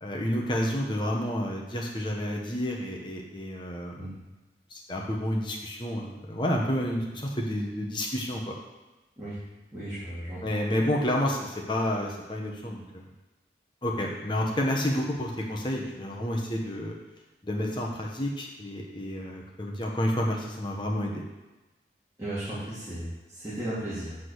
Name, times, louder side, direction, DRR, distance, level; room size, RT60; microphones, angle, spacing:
voice 1, 0.0-4.1 4.7-8.6 10.4-13.1 13.8-16.9 17.4-21.2, left 1 dB, 25° left, -1 dB, 1.1 m, -30 dB
voice 2, 9.7-10.6 22.2-24.2, right 1 dB, 20° right, -12 dB, 2.1 m, -35 dB
8.1 x 3.7 x 6.4 m, 1.1 s
head